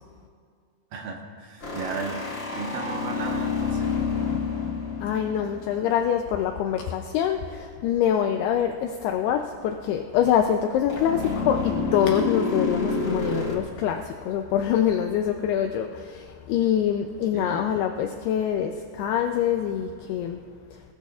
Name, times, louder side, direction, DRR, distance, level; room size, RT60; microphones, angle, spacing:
voice 1, 0.9-2.2 2.5-3.9 17.3-17.6, right 4 dB, 65° right, 0 dB, 2.6 m, -34 dB
sound 1, 1.6-6.2 10.9-13.6, left 4 dB, 50° left, 0.9 m, -28 dB
voice 2, 5.0-20.4 20.7-20.8, left 9 dB, 80° left, 5 dB, 2.5 m, -25 dB
23.5 x 18.5 x 2.4 m, 2.2 s
omnidirectional pair, 4.9 m